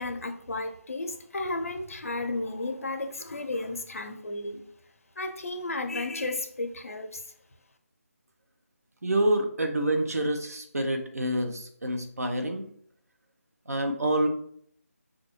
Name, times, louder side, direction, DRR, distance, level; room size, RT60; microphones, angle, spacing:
voice 1, 0.0-4.6 5.2-7.3, left 2 dB, 60° left, 7 dB, 0.6 m, -33 dB
voice 2, 9.0-12.6 13.7-14.3, right 1 dB, 75° right, 5 dB, 0.9 m, -27 dB
5.6 x 2.2 x 3.1 m, 0.63 s
figure-of-eight pair, 160°, 8 cm